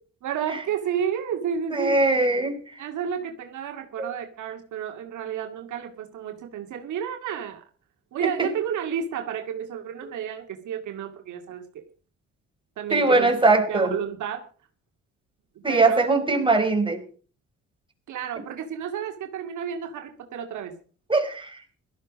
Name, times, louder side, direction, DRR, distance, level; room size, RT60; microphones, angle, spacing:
voice 1, 0.2-2.0 2.8-7.6 8.1-11.9 12.8-14.5 15.7-16.0 18.1-20.7, right 8 dB, 75° right, 4 dB, 2.2 m, -31 dB
voice 2, 1.7-2.8 4.0-4.1 8.2-8.5 12.9-13.9 15.6-17.0 21.1-21.6, right 3 dB, 15° right, 3 dB, 4.5 m, -21 dB
17.5 x 13.5 x 5.2 m, 0.41 s
cardioid pair, 90°, 30 cm